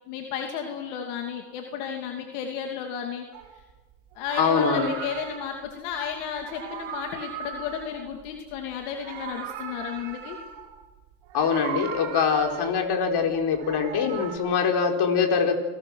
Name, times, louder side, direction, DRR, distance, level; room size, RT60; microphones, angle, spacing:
voice 1, 0.1-3.3 4.1-10.4, left 7 dB, 85° left, 3 dB, 2.7 m, -33 dB
Meow, 3.3-3.5 4.1-5.6 6.3-8.6 8.8-10.8 11.3-12.9 13.4-14.4, right 8 dB, 75° right, 4.1 m, -38 dB
voice 2, 4.4-4.9 11.3-15.5, left 6 dB, 55° left, 4 dB, 4.5 m, -23 dB
29.0 x 19.5 x 6.4 m, 1.2 s
supercardioid pair, 95°, 47 cm